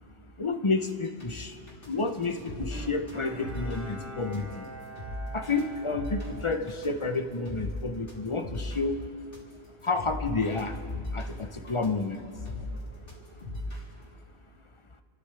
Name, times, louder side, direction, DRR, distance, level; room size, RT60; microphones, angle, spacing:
voice 1, 0.4-1.6 1.9-4.6 5.3-9.0 9.8-10.8 11.1-12.2, left 3 dB, 30° left, 7 dB, 0.7 m, -30 dB
sound 1, 0.7-14.0, left 1 dB, 55° left, 3.5 m, -39 dB
Bowed string instrument, 2.7-7.2 7.6-7.7, right 1 dB, 10° right, 2.7 m, -44 dB
29.5 x 13.0 x 3.3 m, 2.4 s
omnidirectional pair, 1.1 m